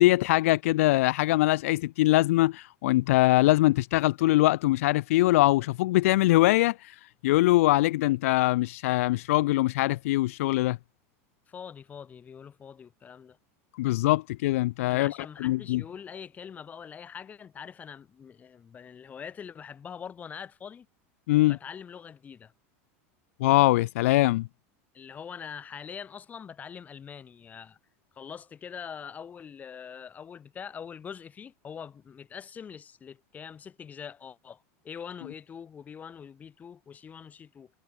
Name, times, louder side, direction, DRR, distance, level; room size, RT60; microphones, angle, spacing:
voice 1, 0.0-6.9 7.2-10.8 13.8-15.1 15.4-15.8 21.3-21.6 23.4-24.5, left 18 dB, 80° left, 1.9 m, -22 dB
voice 2, 11.5-13.4 14.9-20.9 21.5-22.5 24.9-27.8 28.1-37.7, left 7 dB, 20° left, 4.6 m, -43 dB
supercardioid pair, 150°, 7 cm